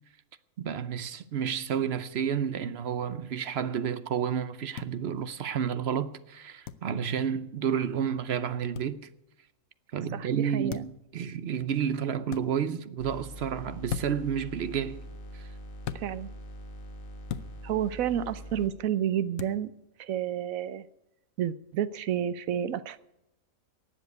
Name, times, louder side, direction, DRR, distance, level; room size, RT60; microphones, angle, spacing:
voice 1, 0.6-9.0 9.9-15.0 15.3-15.5, right 8 dB, 55° right, 0.9 m, -30 dB
sound 1, 4.8-4.9 6.6-6.8 8.7-8.9 10.7-11.0 12.3-12.5 13.9-14.3 15.8-16.1 17.3-17.5 19.4-19.6, left 10 dB, 85° left, 1.1 m, -36 dB
voice 2, 10.1-10.8 15.9-16.3 17.6-19.7 20.0-20.8 21.4-23.0, right 10 dB, 80° right, 1.1 m, -30 dB
sound 2, 13.0-18.7, equal, 40° left, 1.8 m, -43 dB
18.5 x 7.4 x 8.3 m
omnidirectional pair, 1.4 m